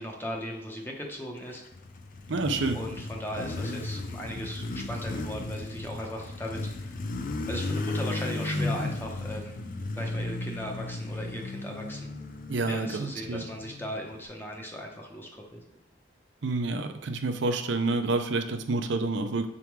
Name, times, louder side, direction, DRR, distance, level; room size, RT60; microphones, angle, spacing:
voice 1, 0.0-1.6 2.7-7.0 7.5-9.6 9.9-12.1 12.7-15.6, equal, 10° left, 1 dB, 0.8 m, -37 dB
Motorcycle, 1.6-14.2, left 2 dB, 45° left, 0.4 m, -35 dB
voice 2, 2.3-2.8 12.5-13.4 16.4-19.5, right 3 dB, 75° right, 6 dB, 0.5 m, -28 dB
6.8 x 3.6 x 4.6 m, 0.89 s
head